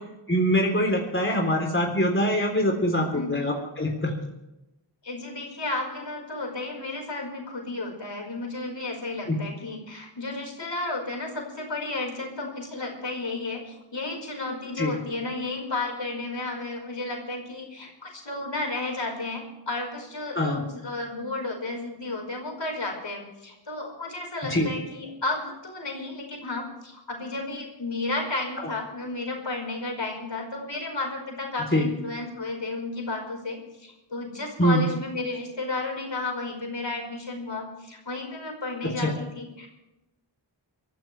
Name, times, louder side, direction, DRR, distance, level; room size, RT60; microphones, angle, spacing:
voice 1, 0.3-4.1 9.3-9.4 14.8-15.0 20.3-20.6 24.4-24.7 31.7-31.9 34.6-34.8 39.0-39.1, equal, 25° left, 1 dB, 3.6 m, -24 dB
voice 2, 5.0-39.7, left 2 dB, 65° left, 1 dB, 5.1 m, -33 dB
23.5 x 14.5 x 3.4 m, 0.97 s
cardioid pair, 50°, 47 cm